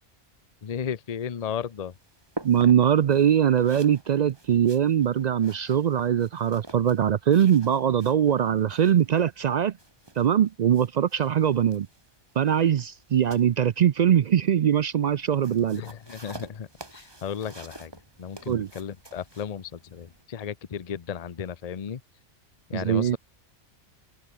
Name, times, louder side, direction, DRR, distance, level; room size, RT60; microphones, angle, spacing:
voice 1, 0.6-1.9 15.7-17.9 18.2-22.0 22.7-23.2, left 7 dB, 40° left, 0.7 m, -34 dB
sound 1, 1.4-20.2, right 2 dB, 20° right, 2.1 m, -47 dB
voice 2, 2.4-9.7 10.2-11.9 12.4-15.8 18.5-18.7 22.7-23.2, right 9 dB, 65° right, 0.4 m, -22 dB
omnidirectional pair, 1.2 m